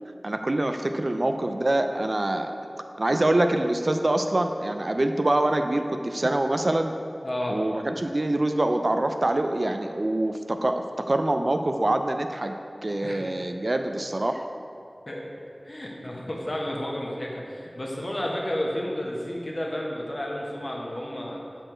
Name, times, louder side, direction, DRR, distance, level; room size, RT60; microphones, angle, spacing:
voice 1, 0.2-2.5 3.0-7.0 7.5-12.5 12.8-14.4, right 1 dB, 55° right, 6 dB, 0.4 m, -25 dB
voice 2, 7.2-7.6 13.0-13.2 15.1-21.4, left 1 dB, 45° left, -2 dB, 1.2 m, -32 dB
8.0 x 4.4 x 4.4 m, 2.5 s
wide cardioid pair, 50°, 0 cm